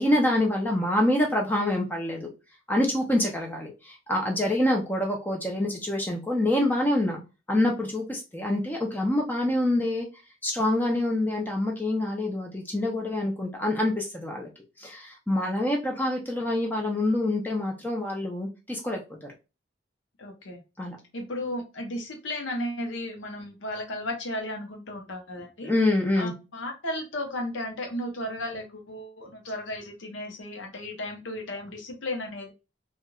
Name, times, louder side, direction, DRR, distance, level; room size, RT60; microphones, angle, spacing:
voice 1, 0.0-2.3 2.7-7.2 7.5-10.1 10.4-14.5 14.8-19.3 20.8-21.0 25.6-26.3, left 1 dB, 10° left, 0 dB, 0.5 m, -26 dB
voice 2, 20.2-20.6 21.1-25.7 26.2-32.5, left 1 dB, 85° left, 3 dB, 0.7 m, -34 dB
3.1 x 2.3 x 2.2 m, 0.28 s
head